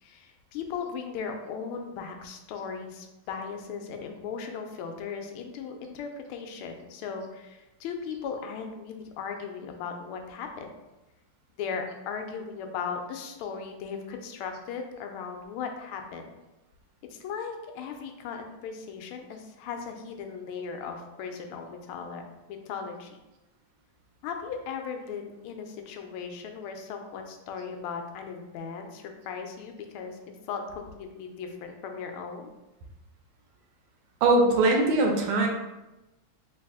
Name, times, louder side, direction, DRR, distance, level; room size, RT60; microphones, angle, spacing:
voice 1, 0.0-10.7 11.6-16.3 17.1-22.2 22.5-23.2 24.2-30.2 30.5-32.5, left 6 dB, 85° left, 4 dB, 1.5 m, -37 dB
voice 2, 34.2-35.5, right 2 dB, 85° right, 2 dB, 1.6 m, -21 dB
3.3 x 3.2 x 3.5 m, 1.0 s
omnidirectional pair, 2.3 m